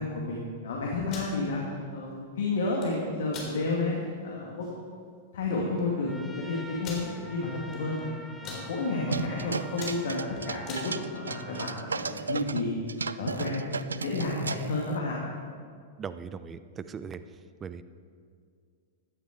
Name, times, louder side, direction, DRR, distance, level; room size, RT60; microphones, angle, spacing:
voice 1, 0.0-1.6 1.9-4.8 5.3-12.8 13.1-15.1, left 3 dB, 65° left, -2 dB, 2.3 m, -31 dB
sound 1, 1.0-1.3 2.6-2.9 3.3-3.5 4.0-4.1 4.5-4.7 5.5-5.6 5.8-5.9 6.8-7.1 7.7-8.0 8.3-8.6 9.2-9.4 9.7-10.9, left 4 dB, 40° left, 3.9 m, -41 dB
Trumpet, 6.0-11.7, equal, ahead, 1.4 m, -47 dB
sound 2, 9.1-12.6 12.9-15.0, right 5 dB, 80° right, 0.4 m, -34 dB
voice 2, 16.0-17.2 17.6-17.8, right 6 dB, 25° right, 13 dB, 0.7 m, -39 dB
16.0 x 11.0 x 4.6 m, 2.2 s
figure-of-eight pair, 100°, 0 cm